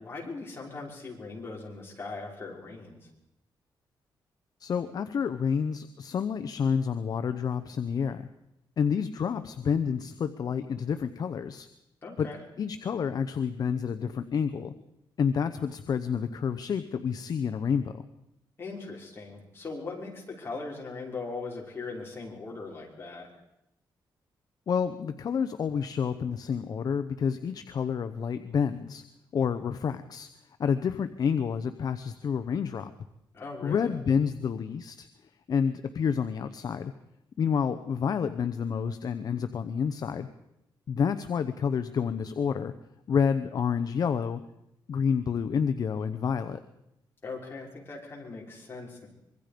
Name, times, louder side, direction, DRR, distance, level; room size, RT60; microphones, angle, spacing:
voice 1, 0.0-3.0 12.0-12.4 18.6-23.3 33.3-34.0 47.2-49.1, left 3 dB, 30° left, -2 dB, 5.8 m, -39 dB
voice 2, 4.6-8.3 8.8-11.7 12.2-12.3 12.6-14.7 15.2-18.0 24.7-29.0 29.3-30.3 30.6-32.9 33.6-35.1 35.5-36.9 37.4-40.3 40.9-42.7 43.1-44.4 44.9-46.6, left 6 dB, 50° left, 10 dB, 0.9 m, -29 dB
25.0 x 23.0 x 5.2 m, 0.84 s
wide cardioid pair, 150°, 8 cm